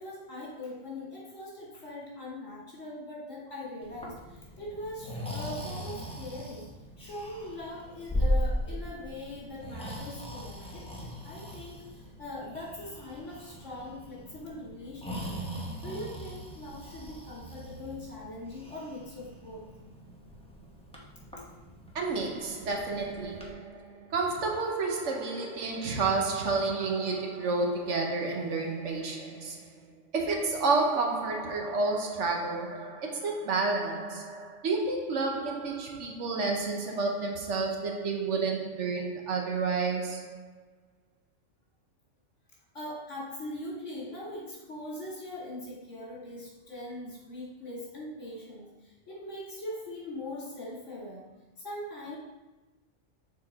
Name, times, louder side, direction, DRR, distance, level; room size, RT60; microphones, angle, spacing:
voice 1, 0.0-6.7 7.0-11.8 12.2-15.4 15.8-19.6 42.7-51.3 51.6-52.2, left 1 dB, 70° left, 2.7 m, -41 dB
Breathing, 3.8-23.5, equal, 5° left, 0.9 m, -38 dB
voice 2, 21.9-29.9 30.1-40.4, right 3 dB, 70° right, 1.2 m, -30 dB
6.7 x 4.3 x 4.1 m
omnidirectional pair, 1.3 m